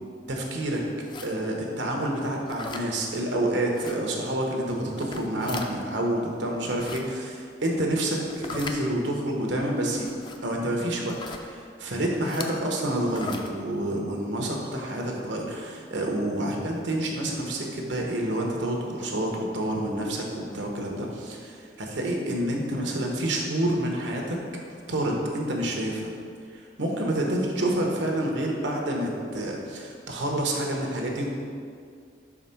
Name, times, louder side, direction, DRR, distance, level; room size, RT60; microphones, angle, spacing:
voice 1, 0.3-0.8 1.2-10.1 10.4-24.4 24.9-26.1 26.5-31.3, right 1 dB, 85° right, 0 dB, 0.9 m, -28 dB
sound 1, 1.0-1.3 2.5-2.9 3.7-4.0 4.9-5.7 6.6-7.0 8.3-8.8 9.9-10.4 11.1-11.4 12.2-12.5 13.1-13.5, left 4 dB, 25° left, 0.3 m, -38 dB
4.9 x 3.7 x 5.6 m, 2.2 s
head